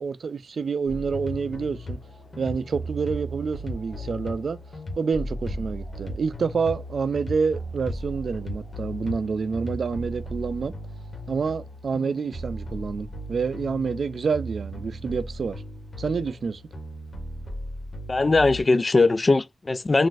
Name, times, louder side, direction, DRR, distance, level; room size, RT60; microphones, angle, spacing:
voice 1, 0.0-2.0 2.4-4.6 5.0-10.7 11.3-15.6 16.0-16.6, right 5 dB, 80° right, 0.3 m, -28 dB
sound 1, 0.9-18.6, equal, 65° left, 1.2 m, -36 dB
voice 2, 18.1-20.1, left 3 dB, 40° left, 0.3 m, -20 dB
3.9 x 2.5 x 2.4 m
wide cardioid pair, 80°, 0 cm